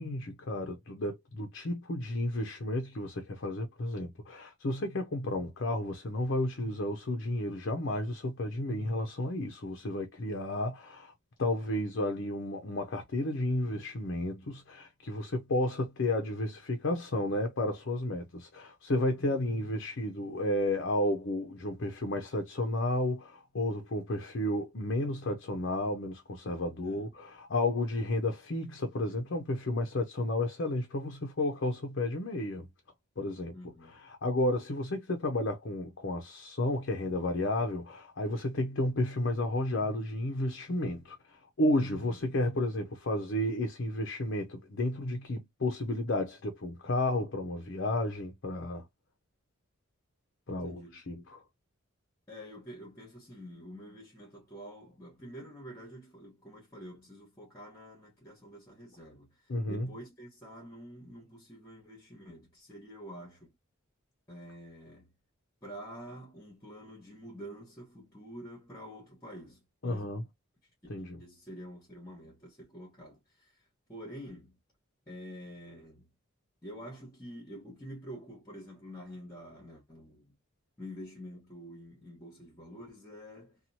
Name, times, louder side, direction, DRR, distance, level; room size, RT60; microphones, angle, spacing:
voice 1, 0.0-11.1 11.4-32.7 33.2-33.5 34.0-41.2 41.6-48.8 50.5-51.4 59.5-59.9 69.8-70.2 70.9-71.2, left 1 dB, 55° left, 0.6 m, -32 dB
voice 2, 26.8-27.1 33.5-34.0 42.0-42.2 50.5-51.0 52.3-63.5 64.3-65.1 65.6-70.2 71.0-73.5 73.9-74.6 75.1-76.1 76.6-80.3 80.8-83.6, equal, 15° left, 1.1 m, -47 dB
2.9 x 2.3 x 2.6 m
head